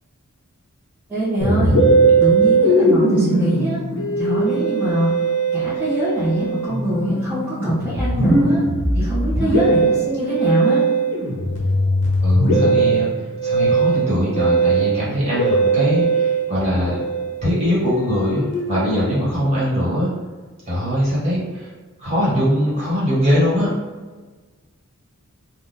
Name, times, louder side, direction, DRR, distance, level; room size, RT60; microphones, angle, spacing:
voice 1, 1.1-1.8 2.2-3.8 4.2-5.1 5.5-8.6 8.9-10.8, equal, 10° right, -12 dB, 0.7 m, -23 dB
Musical instrument, 1.4-19.0, right 2 dB, 55° left, 0.7 m, -19 dB
voice 2, 12.2-17.0 17.4-20.1 20.6-21.7 22.0-23.7, equal, 30° right, -8 dB, 1.3 m, -21 dB
3.4 x 2.2 x 2.7 m, 1.4 s
head